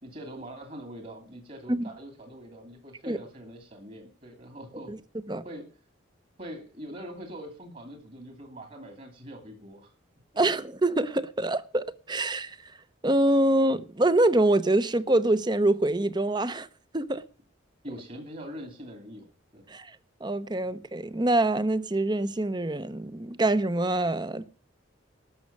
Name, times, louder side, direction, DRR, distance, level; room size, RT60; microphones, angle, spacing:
voice 1, 0.0-4.9 5.4-5.7 6.4-9.9 17.8-19.3 19.5-19.6, equal, 40° right, 2.6 m, -43 dB
voice 2, 10.4-12.7 13.0-16.7 16.9-17.2 19.7-20.0 20.2-24.5, right 1 dB, 20° right, 0.7 m, -25 dB
13.0 x 6.3 x 9.6 m
head